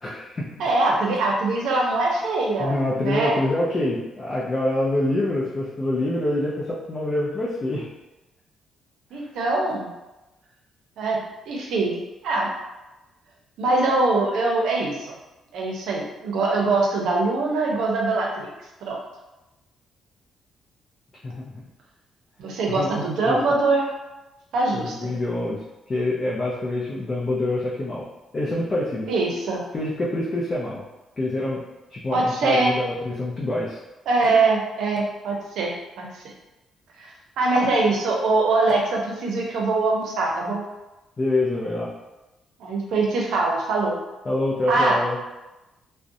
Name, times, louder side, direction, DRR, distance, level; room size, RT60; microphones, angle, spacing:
voice 1, 0.0-0.6 2.6-7.8 21.2-21.5 22.7-22.9 23.3-23.4 24.8-25.6 25.9-28.1 28.3-29.1 29.7-30.8 31.2-31.6 31.9-33.8 41.2-41.9 44.3-45.2, left 1 dB, 35° left, -6 dB, 0.5 m, -26 dB
voice 2, 0.6-3.4 9.1-9.9 11.0-12.5 13.6-15.1 15.5-18.5 18.8-19.0 22.4-23.8 24.5-25.1 29.1-29.6 32.1-32.8 34.1-36.2 37.0-37.1 37.4-40.6 42.6-44.0 44.7-45.0, right 3 dB, 80° right, -1 dB, 0.6 m, -23 dB
2.5 x 2.1 x 2.5 m, 1.0 s
cardioid pair, 90°, 0 cm